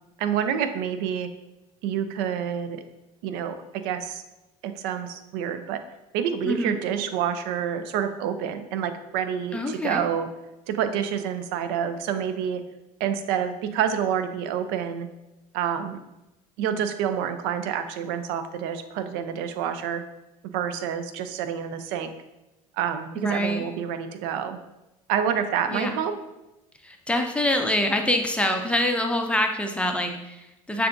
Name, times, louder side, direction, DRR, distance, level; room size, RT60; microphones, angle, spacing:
voice 1, 0.2-1.3 1.8-2.8 3.2-3.6 3.8-4.2 4.6-5.8 6.1-10.3 10.7-12.6 13.0-15.1 15.5-16.0 16.6-20.0 20.5-22.1 22.7-24.6 25.1-26.1, right 8 dB, 60° right, 9 dB, 0.4 m, -28 dB
voice 2, 6.4-6.8 9.5-10.1 23.2-23.6 25.7-26.0 26.8-30.9, left 1 dB, 5° left, 3 dB, 0.6 m, -25 dB
6.5 x 2.6 x 2.5 m, 0.95 s
hypercardioid pair, 65°, 18 cm